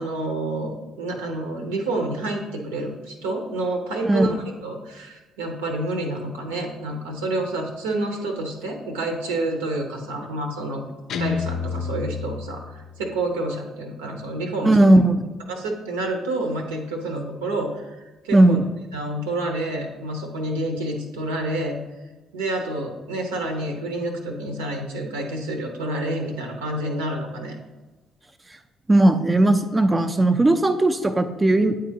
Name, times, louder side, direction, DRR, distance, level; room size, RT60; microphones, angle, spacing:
voice 1, 0.0-4.4 4.6-10.8 11.1-14.8 15.5-18.0 18.2-18.6 18.9-21.8 22.3-27.6, right 2 dB, 75° right, 3 dB, 0.8 m, -28 dB
Guitar, 11.1-13.1, left 6 dB, 55° left, 0.4 m, -30 dB
voice 2, 14.6-15.2 18.3-18.6 28.9-31.7, right 1 dB, 20° right, 7 dB, 0.4 m, -17 dB
9.2 x 3.7 x 2.8 m, 1.2 s
figure-of-eight pair, 45°, 0 cm